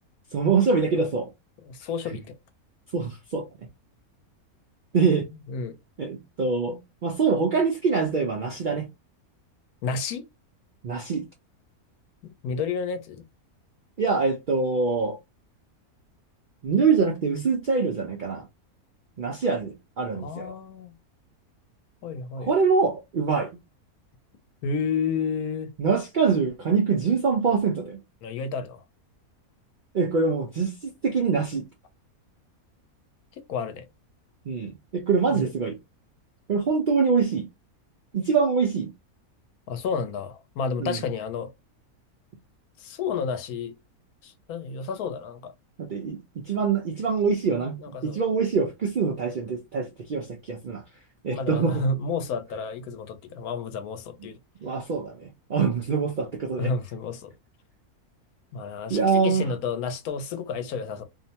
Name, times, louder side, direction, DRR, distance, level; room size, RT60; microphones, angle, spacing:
voice 1, 0.3-1.3 2.9-3.4 4.9-5.2 6.0-8.9 10.8-11.2 14.0-15.2 16.6-18.4 19.2-20.5 22.4-23.5 25.8-28.0 29.9-31.7 34.5-35.8 36.5-37.5 38.1-38.9 40.8-41.0 45.8-46.2 46.5-50.8 51.2-51.8 54.6-56.7 58.9-59.5, right 5 dB, 75° right, 0.4 m, -24 dB
voice 2, 1.6-2.4 5.5-5.8 9.8-10.3 12.2-13.2 20.1-20.9 22.0-22.5 24.6-25.7 28.2-28.8 33.4-33.8 35.3-35.5 39.7-41.5 42.8-43.7 44.2-45.5 47.8-48.2 51.3-54.4 56.6-57.3 58.5-61.0, left 5 dB, 80° left, 1.1 m, -31 dB
2.8 x 2.1 x 2.7 m
omnidirectional pair, 1.5 m